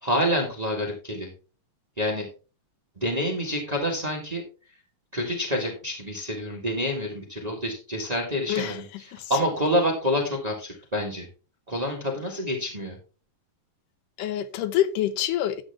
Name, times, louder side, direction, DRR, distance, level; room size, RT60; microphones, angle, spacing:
voice 1, 0.0-1.3 2.0-2.3 2.9-4.4 5.1-8.8 9.3-11.3 11.7-13.0, equal, 25° right, 0.9 m, -27 dB
voice 2, 8.5-9.4 14.2-15.6, left 11 dB, 75° left, 2.2 m, -27 dB
11.5 x 7.9 x 3.5 m
omnidirectional pair, 4.1 m